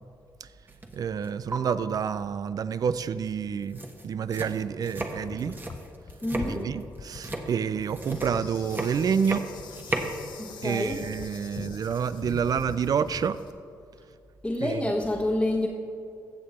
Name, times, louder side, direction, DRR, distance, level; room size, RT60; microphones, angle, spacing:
sound 1, 0.7-1.0 1.2-1.6 3.2-3.3 3.6-10.2, right 2 dB, 25° right, 1.3 m, -35 dB
voice 1, 0.9-5.6 6.4-9.5 10.6-13.4 14.6-14.9, right 7 dB, 55° right, 14 dB, 0.4 m, -28 dB
sound 2, 5.2-13.4, left 5 dB, 40° left, 0.5 m, -43 dB
voice 2, 6.2-6.7 10.4-11.0 14.4-15.7, left 1 dB, 10° left, -2 dB, 1.2 m, -28 dB
Insect, 8.0-13.5, left 6 dB, 70° left, 0.9 m, -48 dB
15.5 x 6.7 x 4.3 m, 2.5 s
supercardioid pair, 60°, 8 cm